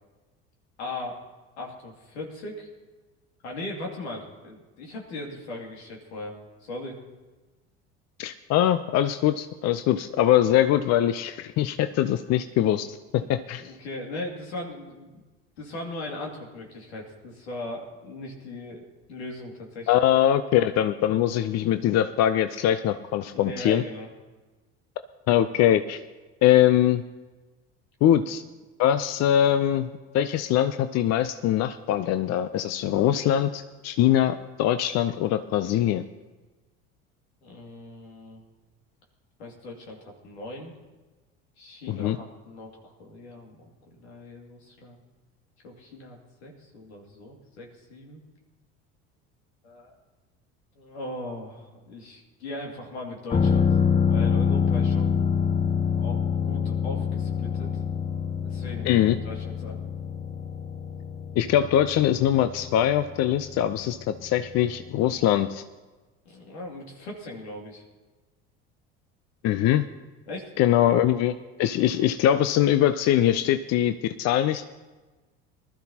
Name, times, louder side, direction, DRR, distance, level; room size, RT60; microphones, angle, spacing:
voice 1, 0.8-1.2 1.6-2.7 3.4-7.0 13.1-13.3 13.6-15.2 15.6-20.0 23.2-24.1 37.4-38.4 39.4-40.7 41.6-45.0 45.6-48.2 49.6-49.9 50.8-53.8 54.0-55.2 56.0-57.8 58.4-59.8 66.2-67.8 70.3-70.5, left 2 dB, 85° left, 0 dB, 2.4 m, -39 dB
voice 2, 8.2-13.7 19.9-23.8 25.3-26.0 26.4-27.0 28.0-28.4 28.8-29.9 30.1-36.0 41.9-42.2 58.9-59.2 61.4-65.6 69.4-69.9 70.6-71.3 71.6-74.6, left 11 dB, 55° left, 11 dB, 0.6 m, -22 dB
sound 1, 53.3-64.9 65.2-65.3, left 6 dB, 20° left, 0.8 m, -26 dB
20.0 x 12.5 x 2.9 m, 1.2 s
hypercardioid pair, 75°, 32 cm